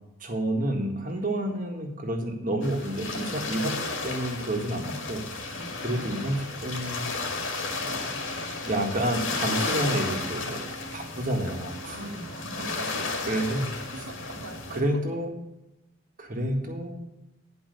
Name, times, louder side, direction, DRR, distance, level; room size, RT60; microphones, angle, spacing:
voice 1, 0.2-7.1 7.8-8.2 8.6-10.6 10.9-12.0 13.3-13.7 14.7-15.3 16.2-17.0, right 1 dB, 40° right, 2 dB, 1.7 m, -29 dB
sound 1, 2.6-14.8, left 3 dB, 75° left, 2.1 m, -33 dB
voice 2, 11.9-13.6 14.1-14.8, right 1 dB, 85° right, -1 dB, 2.0 m, -41 dB
10.5 x 5.4 x 6.7 m, 0.98 s
head